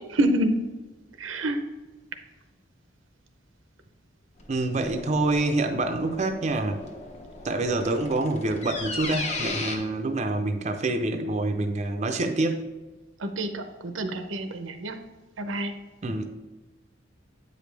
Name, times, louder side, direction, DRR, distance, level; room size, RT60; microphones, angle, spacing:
voice 1, 0.1-0.5 1.2-1.6 13.2-15.0 15.4-15.7, right 1 dB, 90° right, 8 dB, 0.7 m, -27 dB
sound 1, 4.4-9.8, left 3 dB, 35° left, 0.9 m, -36 dB
voice 2, 4.5-6.8 7.4-12.6 16.0-16.3, right 2 dB, 35° right, 5 dB, 0.5 m, -26 dB
8.2 x 5.1 x 3.3 m, 1.2 s
head